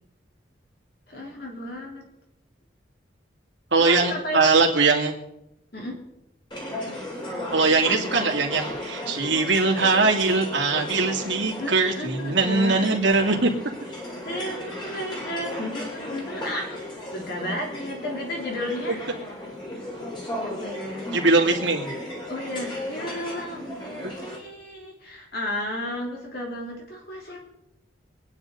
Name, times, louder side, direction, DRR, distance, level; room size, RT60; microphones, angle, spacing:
voice 1, 1.1-2.0 3.8-4.5 5.7-6.0 11.6-13.4 14.2-16.8 17.1-19.0 20.4-21.1 22.3-27.4, left 1 dB, 55° left, -1 dB, 3.4 m, -33 dB
voice 2, 3.7-5.1 7.5-13.5 18.9-19.0 21.1-21.9, right 3 dB, 75° right, 0 dB, 2.5 m, -21 dB
sound 1, 6.5-24.4, left 1 dB, 25° left, 3.7 m, -35 dB
25.5 x 9.9 x 3.9 m, 0.86 s
head